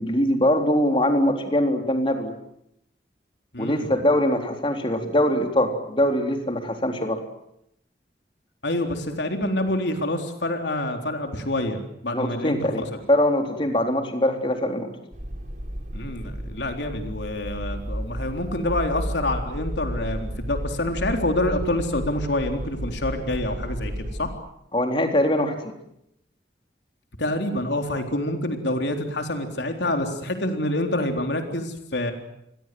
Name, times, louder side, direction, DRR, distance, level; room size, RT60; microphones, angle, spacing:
voice 1, 0.0-2.3 3.6-7.2 12.1-14.9 24.7-25.7, left 1 dB, 30° left, 4 dB, 3.9 m, -22 dB
voice 2, 3.5-3.9 8.6-12.8 15.9-23.9 24.2-24.3 27.2-32.1, left 1 dB, 75° left, 4 dB, 3.8 m, -27 dB
sound 1, 15.1-24.3, equal, 45° right, 3.7 m, -32 dB
29.5 x 22.0 x 7.8 m, 0.77 s
head